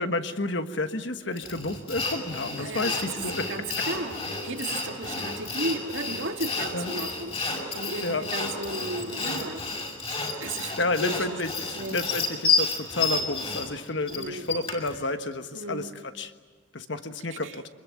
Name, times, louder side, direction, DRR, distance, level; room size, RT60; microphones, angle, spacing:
voice 1, 0.0-3.5 6.7-6.9 8.0-8.3 10.6-16.3 16.7-17.6, left 2 dB, 60° left, 8 dB, 1.4 m, -31 dB
Sawing, 1.4-15.0, left 3 dB, 30° left, 5.4 m, -30 dB
voice 2, 2.6-3.0 3.5-7.4 7.7-9.7 10.4-11.2 11.7-12.0 14.1-14.5 15.5-15.9 17.4-17.6, right 2 dB, 70° right, 5 dB, 2.0 m, -34 dB
25.0 x 21.5 x 9.5 m, 1.4 s
head